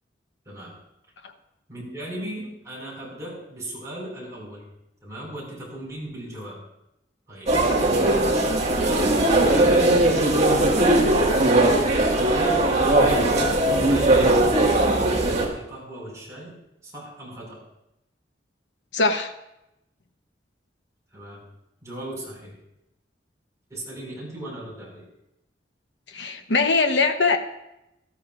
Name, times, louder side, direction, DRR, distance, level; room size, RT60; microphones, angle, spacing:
voice 1, 0.5-0.8 1.7-4.7 5.0-6.6 7.3-7.5 8.8-10.0 12.3-13.4 13.7-17.6 21.1-21.4 21.8-22.5 23.7-25.1, right 1 dB, 20° right, -5 dB, 5.6 m, -37 dB
sound 1, 7.5-15.5, right 1 dB, 40° right, 1.9 m, -19 dB
voice 2, 18.9-19.3 26.1-27.4, left 4 dB, 80° left, 6 dB, 1.0 m, -21 dB
18.0 x 13.5 x 2.5 m, 0.87 s
head